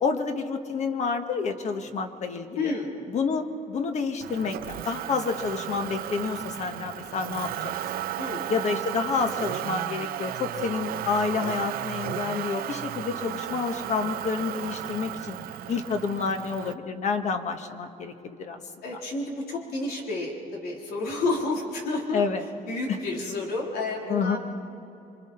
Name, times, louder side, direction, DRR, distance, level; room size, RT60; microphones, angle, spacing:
voice 1, 0.0-2.7 3.1-7.7 8.5-15.4 15.7-18.6 18.9-19.0 22.1-22.4 22.9-23.0 24.1-24.4, left 5 dB, 50° left, 6 dB, 1.4 m, -29 dB
voice 2, 2.6-2.9 8.2-8.4 18.8-22.2 22.7-24.4, left 2 dB, 90° left, -2 dB, 3.8 m, -30 dB
Motor vehicle (road), 4.2-16.7, right 12 dB, 75° right, 0.6 m, -34 dB
28.0 x 24.5 x 4.4 m, 2.8 s
cardioid pair, 165°, 15 cm